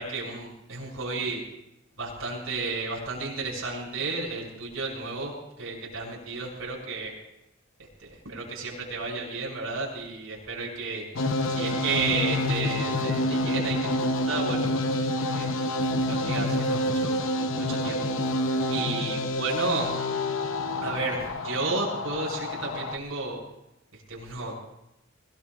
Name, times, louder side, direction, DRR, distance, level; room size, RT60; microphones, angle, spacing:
voice 1, 0.0-1.4 2.0-7.1 8.0-11.0 11.5-14.7 15.3-15.7 16.1-17.2 17.6-18.0 18.7-19.9 20.8-23.4 24.1-24.5, right 3 dB, 80° right, -3 dB, 6.7 m, -32 dB
sound 1, 11.2-23.0, left 1 dB, 65° left, 0.8 m, -28 dB
22.0 x 21.0 x 2.5 m, 0.85 s
head